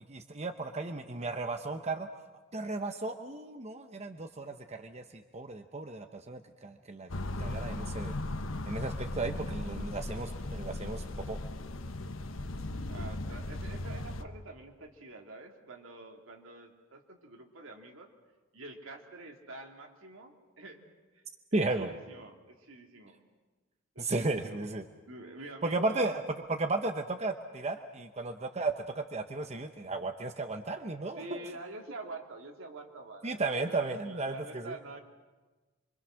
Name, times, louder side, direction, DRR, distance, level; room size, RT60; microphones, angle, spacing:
voice 1, 0.1-2.1 2.5-7.1 7.4-8.2 8.7-11.4 21.5-21.9 24.0-24.8 25.6-26.2 26.5-31.4 33.2-34.7, right 3 dB, 35° right, 6 dB, 0.9 m, -34 dB
sound 1, 7.1-14.2, left 1 dB, 75° left, 1.0 m, -37 dB
voice 2, 12.9-18.1 18.5-20.8 21.1-21.2 21.5-23.2 23.9-24.6 25.1-26.1 31.1-35.0, right 2 dB, 80° right, 2 dB, 2.7 m, -47 dB
25.5 x 25.0 x 6.4 m, 1.3 s
head